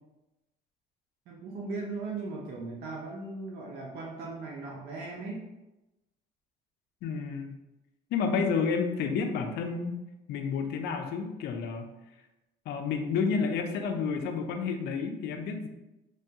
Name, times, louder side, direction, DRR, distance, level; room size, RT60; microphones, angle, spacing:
voice 1, 1.3-5.5, right 3 dB, 75° right, -3 dB, 0.6 m, -38 dB
voice 2, 7.0-7.6 8.1-10.0 10.3-11.9 12.7-15.7, left 5 dB, 75° left, 5 dB, 0.4 m, -30 dB
3.2 x 2.2 x 2.7 m, 0.98 s
cardioid pair, 110°, 17 cm